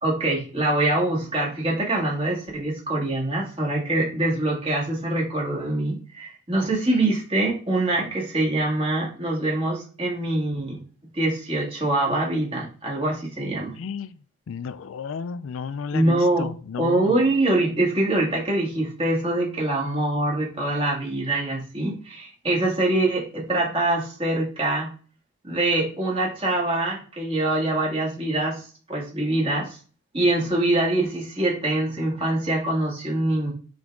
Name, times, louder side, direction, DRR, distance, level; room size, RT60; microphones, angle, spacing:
voice 1, 0.0-10.8 11.1-13.7 15.9-16.5 16.8-24.9 25.4-28.6 28.9-29.8 30.1-33.5, right 2 dB, 25° right, -3 dB, 2.2 m, -24 dB
voice 2, 13.8-14.2 14.5-17.2, left 6 dB, 70° left, 15 dB, 0.4 m, -33 dB
8.0 x 3.9 x 3.6 m, 0.40 s
head